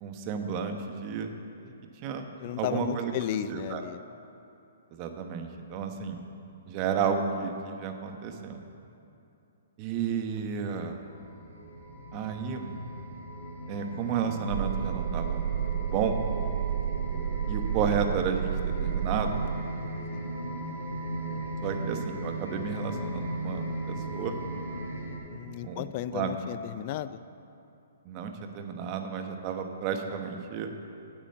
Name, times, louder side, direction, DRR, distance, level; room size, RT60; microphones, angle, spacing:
voice 1, 0.0-1.3 1.6-1.7 2.0-2.3 2.6-3.1 3.5-3.8 4.9-6.2 6.7-8.6 9.8-11.0 12.1-12.7 13.7-16.1 17.5-19.4 21.6-24.3 25.6-26.3 28.0-30.7, right 6 dB, 35° right, 5 dB, 1.2 m, -32 dB
voice 2, 2.4-4.0 16.6-16.7 20.1-20.3 25.3-27.2, left 12 dB, 40° left, 14 dB, 0.4 m, -34 dB
sound 1, 11.0-25.2, right 1 dB, 80° left, 3.3 m, -37 dB
sound 2, 14.5-19.6, right 9 dB, 55° right, 0.3 m, -31 dB
9.0 x 8.7 x 7.8 m, 2.7 s
hypercardioid pair, 145°, 0 cm